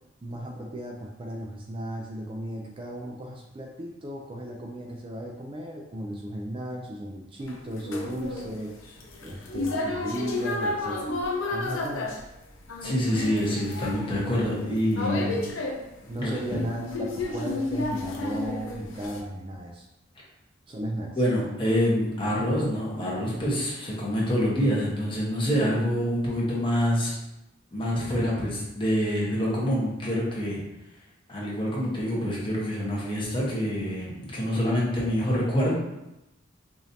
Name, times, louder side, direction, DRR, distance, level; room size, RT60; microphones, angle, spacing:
voice 1, 0.2-8.7 9.2-11.2 11.5-12.1 14.1-14.3 14.7-15.4 16.1-19.9 20.7-21.2, right 1 dB, 25° right, -1 dB, 0.4 m, -35 dB
sound 1, 7.5-19.2, left 2 dB, 90° left, 0.7 m, -32 dB
voice 2, 12.8-15.4 16.2-16.6 21.1-27.2 27.7-30.6 31.3-35.7, equal, 25° left, -5 dB, 1.1 m, -26 dB
4.9 x 2.7 x 2.7 m, 0.92 s
head